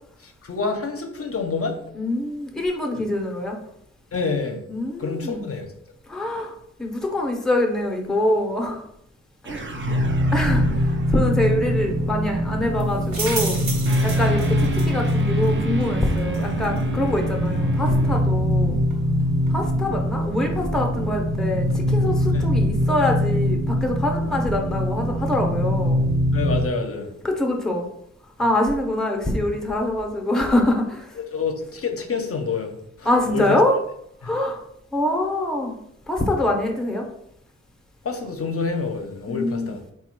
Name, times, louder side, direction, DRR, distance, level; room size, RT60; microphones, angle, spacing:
voice 1, 0.2-1.8 4.1-4.6 5.0-5.7 9.8-10.1 14.2-14.3 22.3-22.5 26.3-27.1 31.3-32.7 33.0-33.6 38.0-39.8, left 4 dB, 50° left, 4 dB, 0.5 m, -27 dB
voice 2, 1.9-3.6 4.7-5.5 6.1-8.8 9.4-9.7 10.3-13.6 14.0-18.8 19.5-26.0 26.9-27.9 28.4-31.2 33.0-33.8 34.2-34.6 34.9-35.8 36.1-37.1 39.3-39.7, left 1 dB, ahead, 1 dB, 0.6 m, -24 dB
sound 1, 9.4-12.2 13.9-18.2, right 3 dB, 40° right, 0.5 m, -34 dB
sound 2, 9.7-26.7, equal, 90° right, 0.6 m, -23 dB
sound 3, 11.2-21.8, right 2 dB, 70° right, 1.1 m, -37 dB
4.1 x 2.2 x 4.4 m, 0.73 s
wide cardioid pair, 130°, 29 cm